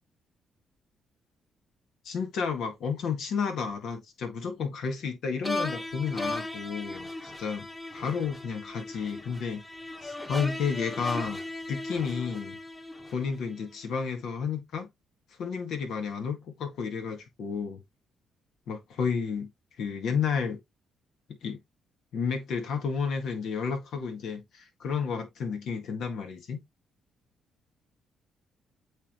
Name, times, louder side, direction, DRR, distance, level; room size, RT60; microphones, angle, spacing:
voice 1, 2.1-7.1 7.4-7.7 7.9-9.6 10.0-11.4 11.7-12.6 13.1-14.9 15.4-17.8 18.7-19.5 19.8-20.6 21.4-21.6 22.1-26.6, left 6 dB, 75° left, 2.0 m, -31 dB
sound 1, 5.4-13.6, left 2 dB, 15° left, 1.4 m, -37 dB
8.3 x 3.8 x 3.1 m
cardioid pair, 90°, 0 cm